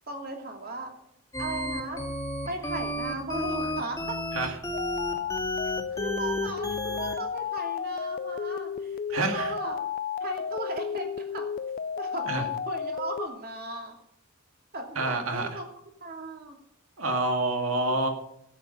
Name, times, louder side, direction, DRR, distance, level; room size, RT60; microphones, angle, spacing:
voice 1, 0.1-0.9 1.4-2.0 2.5-4.2 5.9-9.8 10.2-11.5 12.0-14.0 14.7-15.6 16.0-16.6, right 2 dB, 45° right, 2 dB, 2.7 m, -36 dB
sound 1, 1.3-7.1, left 1 dB, 15° left, 2.0 m, -32 dB
sound 2, 4.7-13.3, left 7 dB, 40° left, 0.4 m, -33 dB
voice 2, 9.1-9.5 12.3-12.4 15.0-15.6 17.0-18.1, right 2 dB, 80° right, 4 dB, 2.2 m, -27 dB
13.0 x 8.4 x 5.5 m, 0.78 s
head